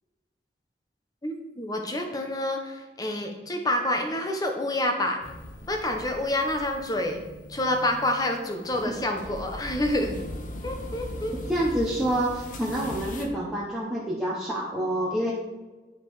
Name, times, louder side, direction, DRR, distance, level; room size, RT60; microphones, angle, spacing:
voice 1, 1.2-5.2 5.7-7.2 7.5-10.1 10.6-11.4, left 1 dB, 20° left, 3 dB, 1.0 m, -28 dB
sound 1, 5.2-13.2, left 1 dB, 45° left, 1.0 m, -40 dB
voice 2, 11.5-15.3, right 1 dB, ahead, -6 dB, 1.0 m, -27 dB
9.1 x 4.9 x 4.9 m, 1.2 s
head